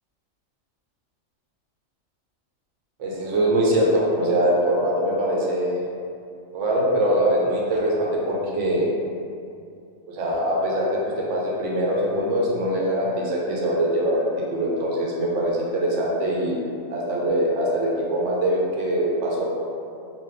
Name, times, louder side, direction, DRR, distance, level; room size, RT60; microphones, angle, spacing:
voice 1, 3.0-5.8 6.5-8.9 10.1-16.6 16.9-19.5, right 1 dB, 70° right, -4 dB, 0.9 m, -23 dB
2.6 x 2.3 x 3.4 m, 2.5 s
omnidirectional pair, 1.4 m